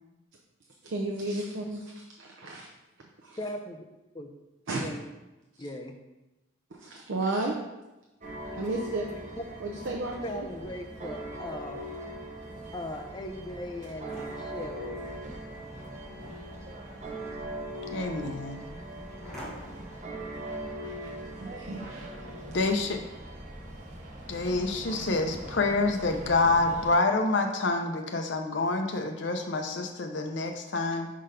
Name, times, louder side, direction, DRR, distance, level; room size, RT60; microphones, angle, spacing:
voice 1, 0.8-2.7 3.0-3.4 4.7-4.9 6.7-7.6 8.5-9.1 9.6-10.5 20.5-20.6 20.8-22.2, right 2 dB, 75° right, 0 dB, 0.6 m, -34 dB
voice 2, 3.4-3.9 4.1-4.3 4.7-5.1 5.6-6.0 9.4-9.5 10.2-11.9 12.7-15.0, left 1 dB, 20° left, 5 dB, 0.5 m, -38 dB
sound 1, 8.2-26.9, right 1 dB, 40° right, 0.9 m, -40 dB
sound 2, 13.2-20.0, equal, 5° left, 1.2 m, -50 dB
voice 3, 17.9-18.6 22.5-23.0 24.3-31.1, left 3 dB, 65° left, 4 dB, 0.7 m, -27 dB
5.5 x 3.9 x 5.0 m, 1.0 s
head